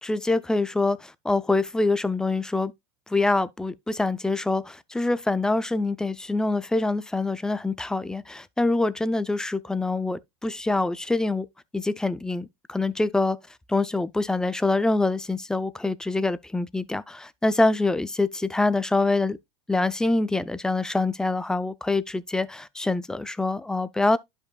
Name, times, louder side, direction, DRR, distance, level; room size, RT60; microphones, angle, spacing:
voice 1, 0.0-2.7 3.1-11.5 11.7-13.4 13.7-19.4 19.7-24.2, left 2 dB, 5° left, 0.4 m, -25 dB
11.5 x 5.4 x 2.2 m
supercardioid pair, 140°, 14 cm